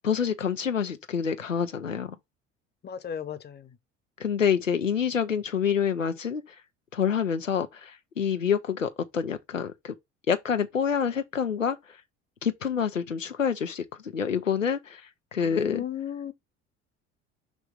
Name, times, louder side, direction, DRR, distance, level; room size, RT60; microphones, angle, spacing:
voice 1, 0.0-2.2 4.2-6.6 6.9-9.9 10.3-12.0 12.4-15.0 15.3-15.8, left 7 dB, 90° left, 0.6 m, -27 dB
voice 2, 2.8-3.8 15.4-16.3, left 9 dB, 25° left, 0.9 m, -36 dB
6.1 x 3.2 x 5.2 m
figure-of-eight pair, 55°, 37 cm